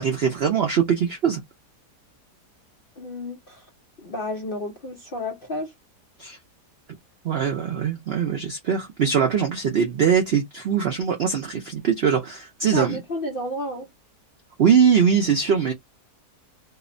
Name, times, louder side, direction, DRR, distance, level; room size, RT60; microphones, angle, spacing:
voice 1, 0.0-1.4 6.2-6.4 7.2-13.0 14.6-15.7, right 7 dB, 90° right, 0.5 m, -21 dB
voice 2, 3.0-3.7 4.0-5.7 12.7-13.9, left 1 dB, 65° left, 0.5 m, -31 dB
2.7 x 2.1 x 2.5 m
omnidirectional pair, 1.8 m